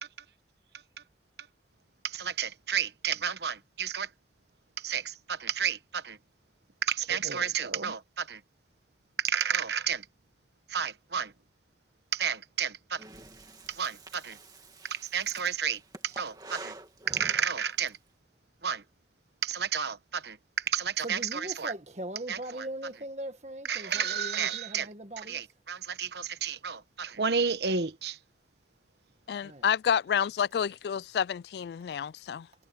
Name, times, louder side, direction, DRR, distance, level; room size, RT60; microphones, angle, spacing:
voice 1, 2.0-4.1 4.8-6.2 6.8-8.4 9.2-10.1 10.7-11.3 12.1-13.0 13.7-14.4 14.9-16.7 17.1-18.0 18.6-18.8 19.4-21.7 22.3-22.7 23.6-24.9 25.2-28.2, right 7 dB, 70° right, 1.1 m, -31 dB
Breathing, 13.0-17.9, right 2 dB, 20° right, 2.4 m, -47 dB
voice 2, 21.0-25.4 29.4-29.7, right 1 dB, 40° right, 1.8 m, -40 dB
voice 3, 29.3-32.5, left 8 dB, 70° left, 0.3 m, -29 dB
head